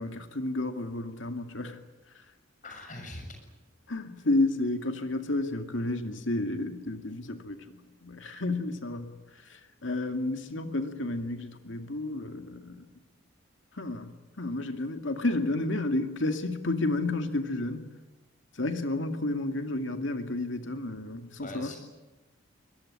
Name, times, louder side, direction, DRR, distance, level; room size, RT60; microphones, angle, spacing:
voice 1, 0.0-1.8 3.9-9.1 9.5-12.9 13.7-14.1 14.4-17.8 18.6-21.7, left 2 dB, 70° left, 2.3 m, -31 dB
voice 2, 2.6-3.4 21.4-21.8, left 1 dB, 40° left, 6.7 m, -41 dB
23.0 x 20.5 x 9.9 m
head